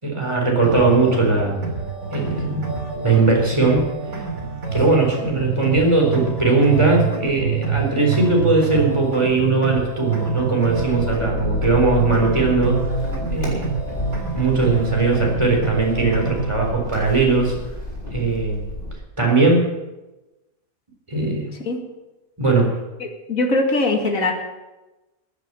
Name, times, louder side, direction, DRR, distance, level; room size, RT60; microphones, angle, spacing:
voice 1, 0.0-1.6 2.1-2.6 3.0-3.9 4.7-12.9 13.3-13.7 14.3-17.6 18.1-18.6 19.2-19.7 21.1-21.5 22.4-22.7, right 3 dB, 20° right, -1 dB, 4.0 m, -19 dB
sound 1, 0.6-16.6, right 5 dB, 60° right, 3.4 m, -27 dB
sound 2, 10.7-18.9, left 3 dB, 35° left, 4.2 m, -30 dB
voice 2, 23.0-24.3, left 2 dB, 60° left, 2 dB, 2.5 m, -21 dB
15.0 x 9.7 x 7.6 m, 1.1 s
omnidirectional pair, 1.6 m